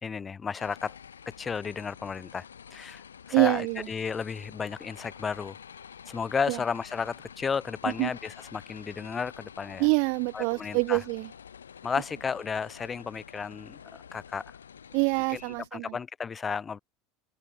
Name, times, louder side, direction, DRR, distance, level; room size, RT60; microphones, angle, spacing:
voice 1, 0.0-1.0 1.3-2.5 2.7-3.0 3.3-5.6 6.1-9.9 10.3-11.0 11.8-14.4 15.3-15.4 15.7-16.8, left 6 dB, 25° left, 2.1 m, -33 dB
sound 1, 0.6-15.7, left 7 dB, 80° left, 3.0 m, -49 dB
voice 2, 3.3-3.9 6.5-6.6 8.0-8.1 9.8-11.3 14.9-16.0, right 40 dB or more, 55° right, 0.7 m, -26 dB
open air
figure-of-eight pair, 75°, 0 cm